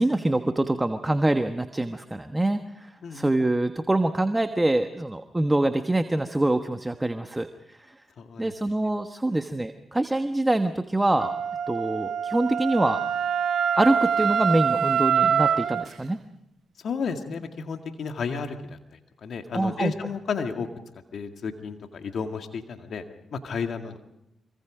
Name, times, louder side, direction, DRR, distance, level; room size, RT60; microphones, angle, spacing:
voice 1, 0.0-7.9 8.4-11.3 11.7-13.0 13.8-16.2 19.5-19.9, right 1 dB, 20° right, 8 dB, 1.3 m, -25 dB
voice 2, 3.0-3.3 8.2-8.6 9.3-9.4 16.8-20.7 21.1-23.0 23.3-24.0, left 5 dB, 70° left, 6 dB, 2.1 m, -32 dB
Wind instrument woodwind instrument, 11.2-15.9, right 7 dB, 75° right, 1.1 m, -25 dB
25.5 x 24.0 x 5.1 m, 0.85 s
supercardioid pair, 45°, 0 cm